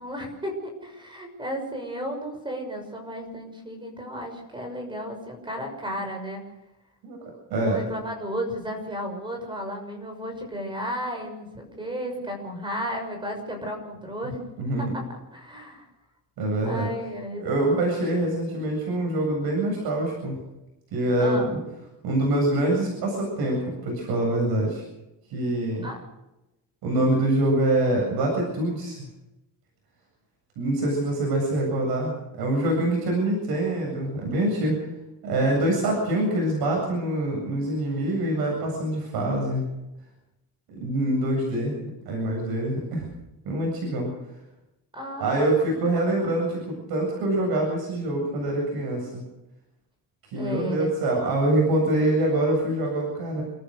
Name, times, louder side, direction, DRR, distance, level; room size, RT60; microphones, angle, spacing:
voice 1, 0.0-6.4 7.6-14.4 14.9-15.0 15.3-15.9 16.6-17.4 21.2-21.5 25.8-26.0 44.9-45.5 50.3-50.9, equal, 10° right, 3 dB, 6.2 m, -33 dB
voice 2, 7.5-7.8 14.2-14.9 16.4-16.9 17.4-20.4 20.9-21.6 22.0-24.8 25.3-25.9 26.8-29.0 30.6-34.8 35.2-39.7 40.8-41.8 42.1-43.1 43.4-44.1 45.2-49.2 50.3-53.4, right 1 dB, 70° right, 0 dB, 7.9 m, -25 dB
29.5 x 14.0 x 6.6 m, 0.96 s
cardioid pair, 170°, 38 cm